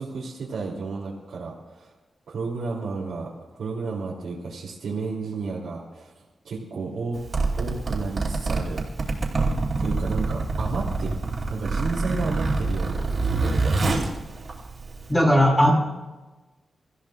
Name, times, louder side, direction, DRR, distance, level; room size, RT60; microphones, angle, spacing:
voice 1, 0.0-1.9 2.3-6.1 6.4-7.2 7.5-9.1 9.8-11.2 11.5-14.1, right 4 dB, 90° right, -6 dB, 3.3 m, -32 dB
Zipper (clothing), 7.1-15.1, right 3 dB, 45° right, 3.9 m, -26 dB
voice 2, 15.1-15.7, equal, 15° left, -2 dB, 5.8 m, -17 dB
29.5 x 15.0 x 2.6 m, 1.2 s
wide cardioid pair, 110°, 0 cm